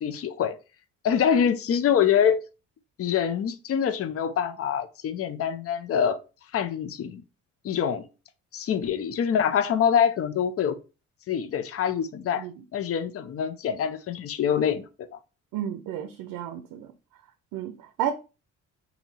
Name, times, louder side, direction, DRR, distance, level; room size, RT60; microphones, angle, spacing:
voice 1, 0.0-0.6 1.0-2.4 3.0-6.2 6.5-7.2 7.6-8.1 8.5-10.8 11.3-12.5 12.7-14.9, left 8 dB, 45° left, 0.5 m, -25 dB
voice 2, 15.5-16.9 17.5-18.1, right 10 dB, 80° right, 0.5 m, -32 dB
2.8 x 2.8 x 4.0 m
supercardioid pair, 75°, 33 cm